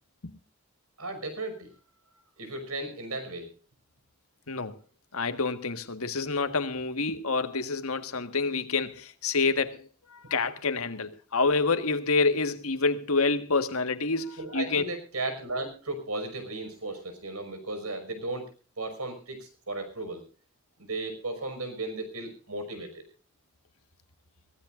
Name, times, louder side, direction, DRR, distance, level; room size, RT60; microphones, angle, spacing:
voice 1, 1.0-1.7 2.4-3.5 14.4-18.5 18.8-20.2 20.8-23.0, right 2 dB, 85° right, 5.6 m, -35 dB
voice 2, 4.5-4.8 5.1-14.8, left 4 dB, 80° left, 1.6 m, -28 dB
23.5 x 16.5 x 2.5 m
head